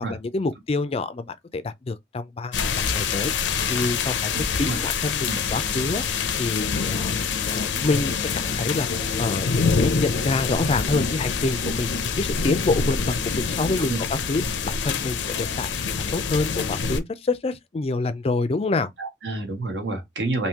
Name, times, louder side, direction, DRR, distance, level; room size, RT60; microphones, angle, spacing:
voice 1, 0.1-3.3 3.7-6.0 6.4-7.1 7.5-8.9 9.2-15.7 16.0-18.9, left 3 dB, 35° left, 0.4 m, -27 dB
sound 1, 2.5-17.0, left 5 dB, 85° left, 0.6 m, -26 dB
voice 2, 4.3-4.8 5.3-5.4 11.6-11.8 13.8-14.0 19.0-20.5, right 2 dB, 70° right, 1.2 m, -29 dB
3.5 x 2.7 x 2.8 m
head